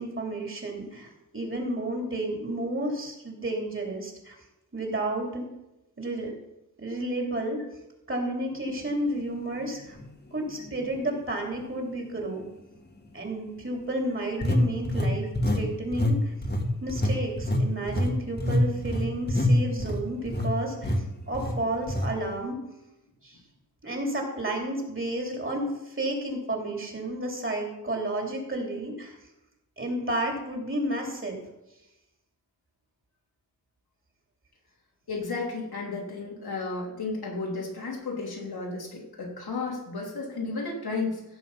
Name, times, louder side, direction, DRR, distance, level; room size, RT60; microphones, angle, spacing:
voice 1, 0.0-4.4 4.7-5.4 6.0-6.3 6.8-7.6 8.1-10.0 10.3-12.4 13.1-16.3 16.8-22.6 23.2-23.4 23.8-29.2 29.8-31.4, right 1 dB, 35° right, 1 dB, 3.3 m, -31 dB
sound 1, 9.9-10.1 10.7-10.8 14.4-15.7 15.9-16.2 16.4-20.5 20.8-21.0 21.3-21.5 21.9-22.1, left 1 dB, 25° left, 1.8 m, -25 dB
voice 2, 35.1-41.2, left 3 dB, 90° left, -2 dB, 3.4 m, -33 dB
16.0 x 7.1 x 5.6 m, 0.92 s
wide cardioid pair, 105°, 36 cm